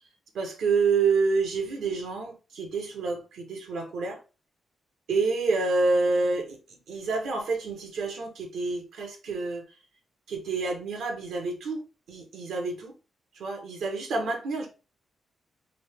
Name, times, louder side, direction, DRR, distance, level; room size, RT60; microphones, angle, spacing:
voice 1, 0.3-4.2 5.1-9.6 10.3-12.9 13.3-14.7, right 4 dB, 90° right, 1.3 m, -28 dB
3.9 x 2.9 x 3.4 m
cardioid pair, 90°, 0 cm